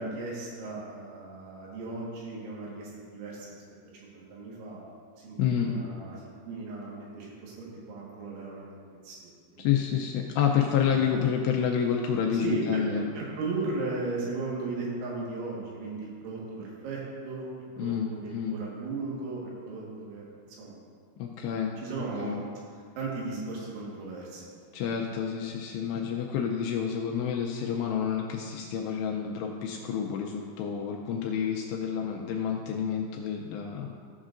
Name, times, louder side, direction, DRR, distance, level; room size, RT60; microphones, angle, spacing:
voice 1, 0.0-3.5 4.0-4.8 5.2-8.6 9.0-9.6 10.8-11.3 12.4-12.8 13.1-17.5 17.8-20.3 20.6-20.7 21.8-22.5 23.0-24.4 25.4-25.6, right 3 dB, 85° right, -4 dB, 4.0 m, -36 dB
voice 2, 5.4-5.7 9.6-13.1 17.8-18.5 21.2-21.7 22.2-22.4 24.7-33.9, left 8 dB, 85° left, 1 dB, 2.5 m, -29 dB
14.5 x 6.3 x 2.5 m, 2.1 s
omnidirectional pair, 5.3 m